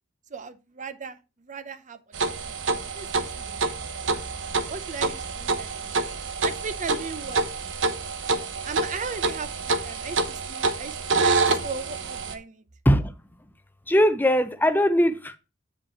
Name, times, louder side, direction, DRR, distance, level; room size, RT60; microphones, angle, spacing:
voice 1, 0.3-5.9 6.4-7.4 8.6-12.6, right 4 dB, 40° right, 0.6 m, -38 dB
sound 1, 2.1-12.3, right 3 dB, 70° right, 0.9 m, -27 dB
voice 2, 13.9-15.4, equal, 10° left, 0.6 m, -20 dB
8.2 x 5.0 x 4.3 m
head